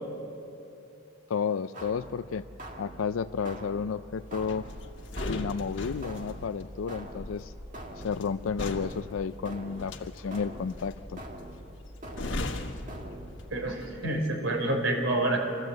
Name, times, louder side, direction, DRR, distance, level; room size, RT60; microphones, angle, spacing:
voice 1, 1.3-2.5 2.8-4.7 5.3-7.5 8.0-11.2, left 6 dB, 90° left, 11 dB, 0.4 m, -32 dB
sound 1, 1.7-13.7, right 1 dB, 40° right, 1.9 m, -44 dB
sound 2, 4.4-13.8 14.1-14.3, left 2 dB, 65° left, 1.4 m, -39 dB
voice 2, 13.5-15.5, right 2 dB, 80° right, 3 dB, 3.9 m, -28 dB
26.5 x 14.0 x 7.8 m, 2.8 s
head